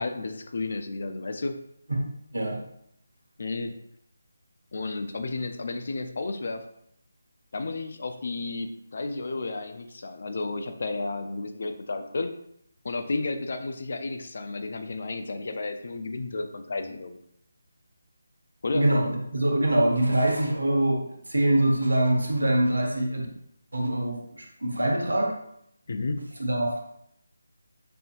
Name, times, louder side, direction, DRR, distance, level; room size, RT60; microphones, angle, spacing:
voice 1, 0.0-1.5 3.4-3.7 4.7-6.6 7.5-12.3 12.8-17.2 18.6-18.9 25.9-26.3, left 3 dB, 55° left, 8 dB, 0.3 m, -32 dB
voice 2, 18.7-23.3 23.7-25.3 26.4-26.8, right 1 dB, 90° right, 0 dB, 1.0 m, -24 dB
5.5 x 2.6 x 2.4 m, 0.74 s
figure-of-eight pair, 160°, 0 cm